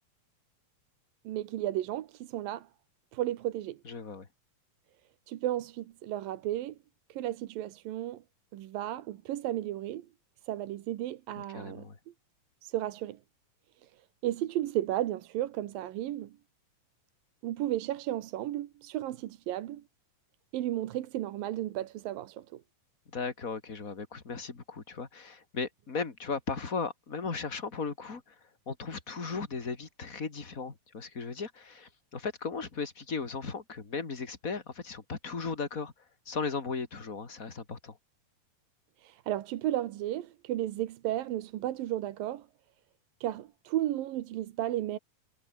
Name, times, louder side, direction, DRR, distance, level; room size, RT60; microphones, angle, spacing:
voice 1, 1.2-2.7 3.1-3.8 5.3-6.8 7.1-8.2 8.5-10.1 10.4-11.9 12.6-13.2 13.8-13.9 14.2-16.4 17.4-19.8 20.5-22.6 39.0-42.5 43.2-45.0, right 13 dB, 80° right, 2.9 m, -34 dB
voice 2, 3.8-4.3 11.4-12.0 23.1-28.3 28.7-35.9 36.3-38.0, left 4 dB, 25° left, 2.8 m, -36 dB
omnidirectional pair, 4.1 m